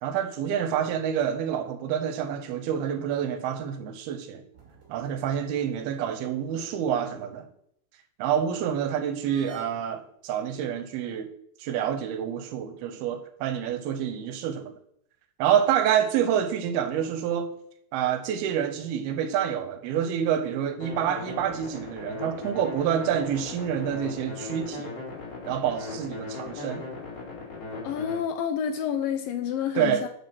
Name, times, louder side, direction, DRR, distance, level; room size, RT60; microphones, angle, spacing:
voice 1, 0.0-4.4 4.9-7.5 8.2-11.3 11.6-14.7 15.4-17.5 17.9-24.9 25.5-26.8 29.8-30.0, right 9 dB, 75° right, 2.7 m, -27 dB
sound 1, 4.5-6.2 6.5-6.6 9.2-9.7, right 2 dB, 40° right, 2.2 m, -51 dB
sound 2, 20.8-28.2, left 3 dB, 55° left, 5.3 m, -38 dB
voice 2, 27.8-30.1, left 8 dB, 75° left, 2.1 m, -29 dB
7.8 x 7.3 x 6.2 m
omnidirectional pair, 4.7 m